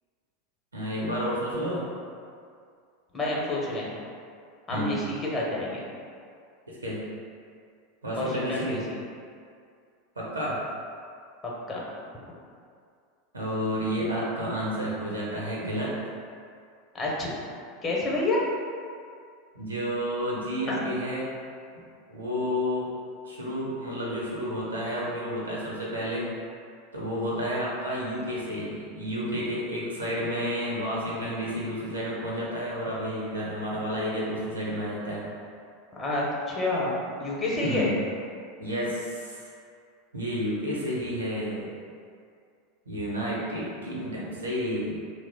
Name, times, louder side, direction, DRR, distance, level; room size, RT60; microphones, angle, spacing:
voice 1, 0.7-1.9 4.7-5.0 6.7-7.1 8.0-8.8 10.2-10.6 13.3-16.0 19.5-21.3 21.7-21.8 22.1-22.9 23.2-26.3 26.9-35.3 37.6-38.0 38.6-39.5 40.1-41.7 42.9-45.0, equal, 80° right, -5 dB, 0.7 m, -31 dB
voice 2, 3.1-3.9 4.7-5.8 8.2-9.0 11.7-11.8 16.9-17.3 17.8-18.4 20.7-20.8 35.9-37.9, left 2 dB, 25° left, -5 dB, 0.8 m, -28 dB
2.9 x 2.0 x 3.9 m, 2.3 s
figure-of-eight pair, 85°, 0 cm